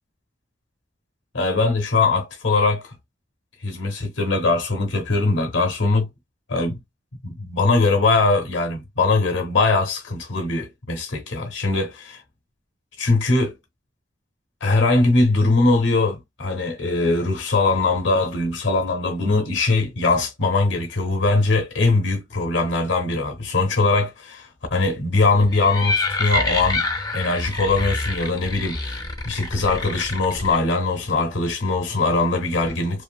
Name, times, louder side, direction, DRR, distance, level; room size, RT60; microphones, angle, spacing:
voice 1, 1.3-2.9 3.6-6.1 6.5-6.8 7.2-12.2 13.0-13.5 14.6-26.9 27.1-29.0 29.2-33.0, left 3 dB, 85° left, 0.7 m, -21 dB
sound 1, 25.4-30.6, left 2 dB, 20° left, 0.5 m, -27 dB
2.6 x 2.4 x 2.3 m
head